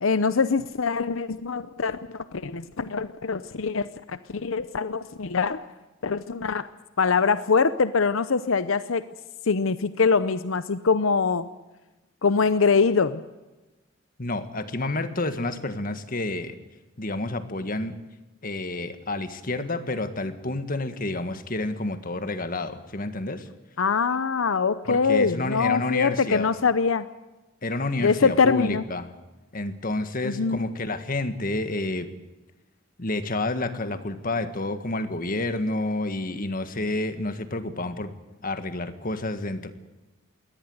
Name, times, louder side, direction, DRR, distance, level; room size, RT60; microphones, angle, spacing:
voice 1, 0.0-5.7 6.0-6.7 7.0-9.0 9.5-11.5 12.2-13.2 23.8-27.1 28.0-28.8 30.2-30.7, left 5 dB, 85° left, 13 dB, 0.7 m, -23 dB
voice 2, 14.2-16.6 17.0-18.0 18.4-23.5 24.8-26.5 27.6-29.1 29.5-32.1 33.0-38.1 38.4-39.7, left 2 dB, 45° left, 10 dB, 1.7 m, -29 dB
22.0 x 18.5 x 7.9 m, 1.1 s
head